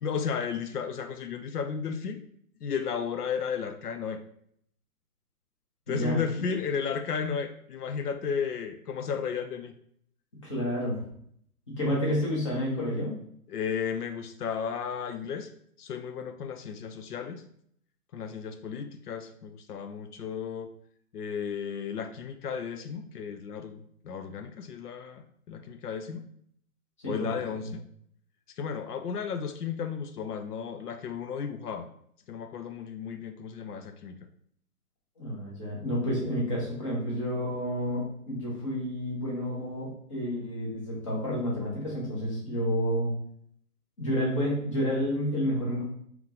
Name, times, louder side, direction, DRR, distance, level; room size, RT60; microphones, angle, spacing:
voice 1, 0.0-2.2 2.6-4.2 5.9-9.7 13.5-15.5 15.8-17.4 18.1-20.7 21.1-26.3 27.1-27.8 28.6-31.9 32.3-34.2, left 6 dB, 85° left, 8 dB, 0.6 m, -34 dB
voice 2, 5.9-6.2 10.4-11.0 11.7-13.1 27.0-27.1 35.2-43.1 44.0-45.8, equal, 20° left, -5 dB, 0.9 m, -30 dB
3.4 x 3.1 x 3.7 m, 0.67 s
hypercardioid pair, 165°, 46 cm